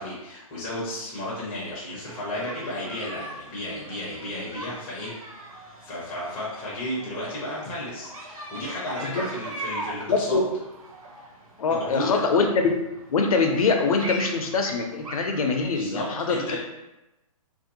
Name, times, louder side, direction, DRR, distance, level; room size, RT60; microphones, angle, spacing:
voice 1, 0.0-5.1 5.8-10.4 11.8-12.2 15.7-16.6, left 1 dB, 10° left, -7 dB, 0.4 m, -33 dB
sound 1, 2.1-15.8, right 1 dB, 75° right, 0.7 m, -41 dB
voice 2, 10.1-10.4 11.6-12.7 13.1-16.6, left 4 dB, 75° left, 4 dB, 0.5 m, -23 dB
2.6 x 2.1 x 2.8 m, 0.97 s
hypercardioid pair, 160°, 19 cm